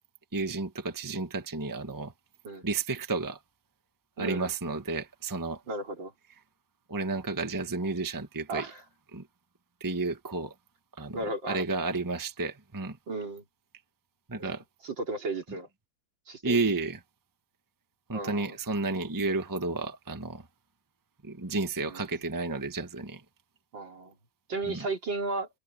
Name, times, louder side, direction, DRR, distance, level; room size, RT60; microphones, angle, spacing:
voice 1, 0.3-2.1 2.6-3.4 4.2-5.6 6.9-8.7 9.1-9.3 9.8-10.5 11.0-11.2 11.5-13.0 14.3-14.6 16.4-17.0 18.1-20.4 21.2-23.2 24.7-24.9, right 3 dB, 10° right, 1.3 m, -31 dB
voice 2, 4.2-4.5 5.7-6.1 8.5-8.8 11.1-11.6 13.1-13.4 14.4-14.6 14.8-15.7 16.3-16.6 18.1-18.6 21.8-22.1 23.7-24.2 24.5-25.5, right 3 dB, 60° right, 4.2 m, -34 dB
omnidirectional pair, 2.3 m